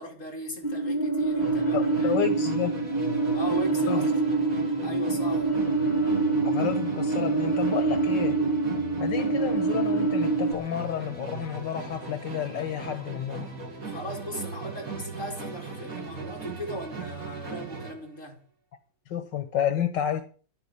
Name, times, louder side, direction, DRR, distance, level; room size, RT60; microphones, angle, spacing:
voice 1, 0.0-2.2 3.3-4.0 4.8-5.5 13.8-18.4, equal, 45° left, 4.7 m, -37 dB
sound 1, 0.6-10.5, right 3 dB, 20° left, 3.6 m, -26 dB
Musical instrument, 1.4-18.1, right 3 dB, 50° right, 3.5 m, -38 dB
voice 2, 1.7-2.8 3.9-4.1 6.4-8.4 9.0-13.5 19.1-20.2, left 9 dB, 80° left, 2.0 m, -30 dB
11.0 x 9.3 x 10.0 m
omnidirectional pair, 1.9 m